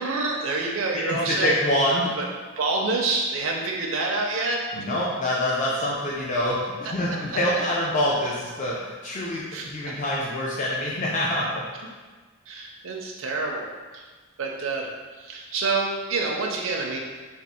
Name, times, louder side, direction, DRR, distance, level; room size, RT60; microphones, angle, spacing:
voice 1, 0.0-1.5 2.2-2.3 2.6-4.9 9.5-9.7 12.5-13.7 13.9-14.0 14.4-14.9 15.2-17.0, right 3 dB, 70° right, -1 dB, 0.5 m, -27 dB
voice 2, 1.1-2.1 4.7-11.6, left 1 dB, 35° left, -5 dB, 0.4 m, -25 dB
3.5 x 2.4 x 4.2 m, 1.4 s
head